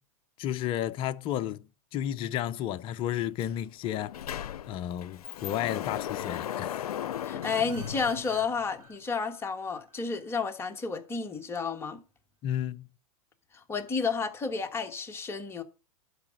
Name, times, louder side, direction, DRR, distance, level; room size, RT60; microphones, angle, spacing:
voice 1, 0.4-1.7 1.9-4.2 4.7-6.9 12.4-12.9, left 11 dB, 30° left, 0.5 m, -32 dB
Sliding door, 3.4-3.5 3.8-8.8, left 10 dB, 90° left, 0.5 m, -37 dB
voice 2, 7.2-12.0 13.7-15.6, left 5 dB, 15° left, 1.3 m, -31 dB
sound 1, 7.4-10.8, right 4 dB, 90° right, 3.5 m, -52 dB
11.5 x 4.9 x 6.3 m
hypercardioid pair, 130°, 19 cm